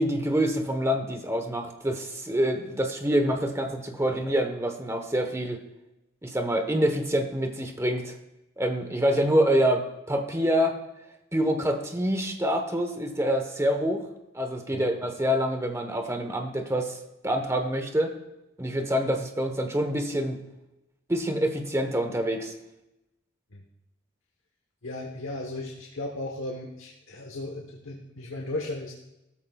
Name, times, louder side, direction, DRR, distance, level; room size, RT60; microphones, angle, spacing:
voice 1, 0.0-5.6 6.2-8.1 8.6-10.8 11.3-14.0 14.3-17.0 17.2-18.1 18.6-20.4 21.1-22.5, equal, 15° right, 5 dB, 1.1 m, -26 dB
voice 2, 24.8-28.9, left 2 dB, 75° left, 0 dB, 1.2 m, -36 dB
15.5 x 13.5 x 2.4 m, 0.92 s
head